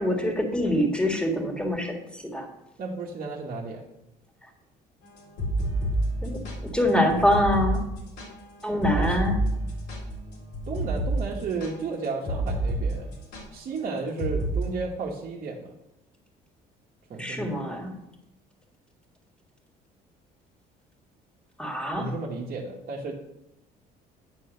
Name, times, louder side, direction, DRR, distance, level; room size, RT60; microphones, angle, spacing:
voice 1, 0.0-2.5 6.2-7.8 8.6-9.4 17.2-17.9 21.6-22.1, left 1 dB, 5° left, 3 dB, 1.7 m, -25 dB
voice 2, 2.8-3.8 9.0-9.2 10.7-13.1 13.5-15.7 17.1-17.5 22.0-23.1, right 4 dB, 55° right, -4 dB, 1.3 m, -33 dB
sound 1, 5.2-12.8 13.1-13.4 14.2-14.6, right 1 dB, 80° left, 2.4 m, -29 dB
9.2 x 4.1 x 6.4 m, 0.87 s
cardioid pair, 110°, 17 cm